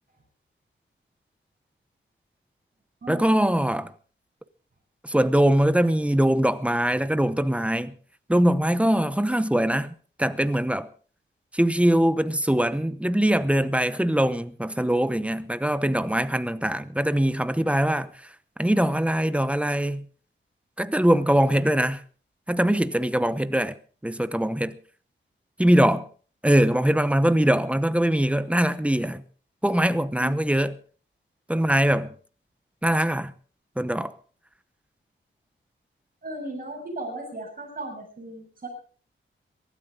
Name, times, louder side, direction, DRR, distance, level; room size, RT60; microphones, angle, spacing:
voice 1, 3.1-3.9 5.0-7.9 8.3-9.9 10.2-10.9 11.5-18.1 18.6-20.0 20.8-22.0 22.5-23.7 24.0-24.8 25.6-26.1 26.4-29.2 29.6-30.7 31.5-32.1 32.8-33.3 33.8-34.1, right 1 dB, 5° right, 0.9 m, -22 dB
voice 2, 36.2-38.7, right 2 dB, 45° right, 6.9 m, -36 dB
23.0 x 13.0 x 3.8 m
wide cardioid pair, 120°, 21 cm